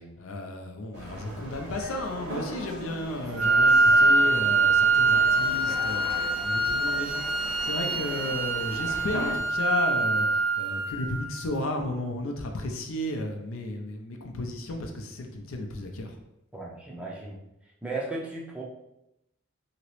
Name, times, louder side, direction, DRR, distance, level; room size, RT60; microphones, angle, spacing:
voice 1, 0.2-7.2 7.6-16.1, left 1 dB, 75° left, 4 dB, 0.5 m, -34 dB
sound 1, 0.9-9.4, equal, 55° right, 1.2 m, -39 dB
Wind instrument woodwind instrument, 3.4-11.3, right 3 dB, 75° right, 0.5 m, -24 dB
voice 2, 4.0-4.3 16.5-17.4 17.8-18.6, right 2 dB, 5° right, -3 dB, 0.5 m, -36 dB
2.9 x 2.9 x 3.0 m, 0.86 s
head